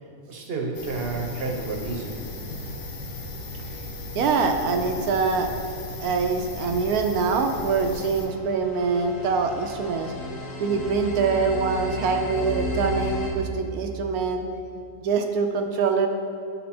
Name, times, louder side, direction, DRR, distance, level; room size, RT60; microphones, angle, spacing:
voice 1, 0.3-2.3, right 3 dB, 50° right, 1 dB, 0.9 m, -30 dB
sound 1, 0.7-8.3, left 2 dB, 50° left, 1.1 m, -36 dB
voice 2, 4.1-5.5 6.0-10.1 10.6-14.4 15.0-16.1, right 4 dB, 80° right, 4 dB, 1.0 m, -24 dB
sound 2, 7.9-13.3, left 1 dB, 75° left, 1.8 m, -34 dB
10.5 x 4.2 x 4.2 m, 2.6 s
omnidirectional pair, 1.6 m